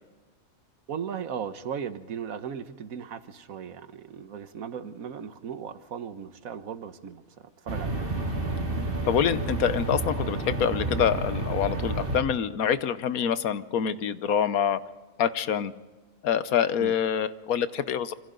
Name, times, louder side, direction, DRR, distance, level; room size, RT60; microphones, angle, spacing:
voice 1, 0.9-8.0 16.8-16.9, right 7 dB, 75° right, 11 dB, 1.5 m, -37 dB
sound 1, 7.7-12.2, right 2 dB, 40° right, 2.6 m, -30 dB
voice 2, 9.1-14.8 15.2-15.7 16.2-18.1, left 8 dB, 85° left, 13 dB, 1.3 m, -26 dB
27.0 x 25.0 x 3.9 m, 1.2 s
omnidirectional pair, 1.5 m